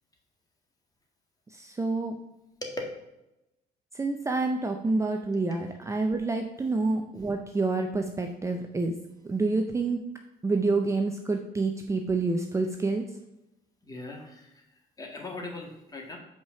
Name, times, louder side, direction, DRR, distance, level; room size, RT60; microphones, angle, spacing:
voice 1, 1.5-2.2 3.9-8.9 9.2-10.0 10.4-13.1, right 3 dB, 15° right, 4 dB, 0.6 m, -28 dB
voice 2, 13.9-14.5 15.0-16.2, left 2 dB, 20° left, 2 dB, 1.7 m, -39 dB
5.6 x 5.0 x 5.7 m, 0.90 s
cardioid pair, 110°, 17 cm